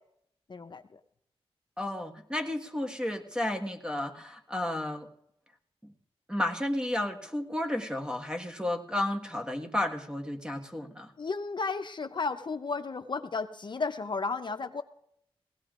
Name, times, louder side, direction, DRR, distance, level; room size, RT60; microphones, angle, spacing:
voice 1, 0.5-1.0 11.2-14.8, left 4 dB, 50° left, 7 dB, 0.7 m, -33 dB
voice 2, 1.8-5.1 5.8-5.9 6.3-11.1, left 1 dB, 10° right, 3 dB, 1.5 m, -32 dB
20.5 x 17.0 x 2.5 m, 0.73 s
wide cardioid pair, 75°, 10 cm